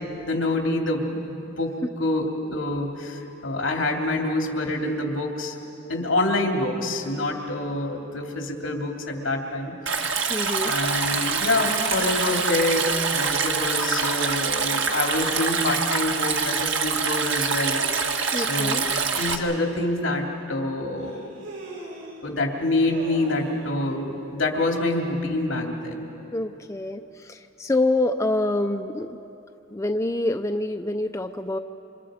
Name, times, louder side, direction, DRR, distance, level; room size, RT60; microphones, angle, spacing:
voice 1, 0.2-5.5 5.9-9.7 10.6-17.8 18.4-21.2 22.2-26.1, left 2 dB, 70° left, 1 dB, 2.9 m, -26 dB
Stream, 9.9-19.4, right 5 dB, 65° right, 1.6 m, -25 dB
voice 2, 10.3-10.7 18.3-18.8 26.3-29.2 29.7-31.6, left 2 dB, 15° left, 6 dB, 0.5 m, -26 dB
Human voice, 21.0-22.2 22.6-23.7, right 1 dB, 85° right, 7.3 m, -40 dB
28.0 x 27.0 x 5.1 m, 2.9 s
head